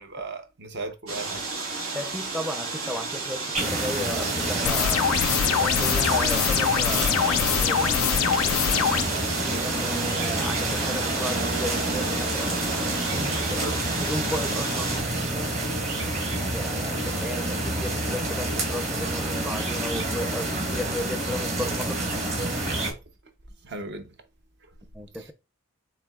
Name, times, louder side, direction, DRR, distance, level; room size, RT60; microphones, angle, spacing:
voice 1, 0.0-1.5 13.6-13.8 15.9-16.2 22.5-22.9 23.6-24.1 24.6-24.7 25.2-25.3, right 2 dB, 50° right, 0.8 m, -37 dB
sound 1, 1.1-15.0, right 3 dB, 85° right, 1.8 m, -33 dB
voice 2, 1.9-5.1 5.5-8.1 8.7-9.1 9.4-12.6 12.9-15.0 16.5-22.0 24.9-25.3, equal, 5° right, 0.4 m, -35 dB
sound 2, 3.5-22.9, right 1 dB, 30° right, 1.3 m, -28 dB
sound 3, 4.7-9.0, left 10 dB, 80° left, 0.3 m, -24 dB
6.9 x 2.8 x 2.4 m
head